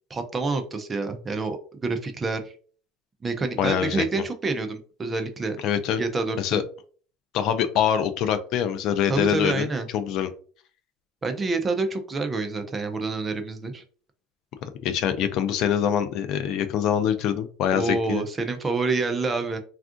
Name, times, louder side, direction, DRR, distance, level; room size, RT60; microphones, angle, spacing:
voice 1, 0.1-2.4 3.2-5.6 6.0-6.6 9.1-9.9 11.2-13.8 17.7-19.6, right 3 dB, 20° right, 7 dB, 0.4 m, -27 dB
voice 2, 3.6-4.1 5.6-6.0 6.4-6.6 7.3-9.7 9.9-10.3 14.8-18.2, left 9 dB, 50° left, 10 dB, 0.3 m, -24 dB
3.5 x 2.4 x 2.4 m, 0.43 s
cardioid pair, 145°, 0 cm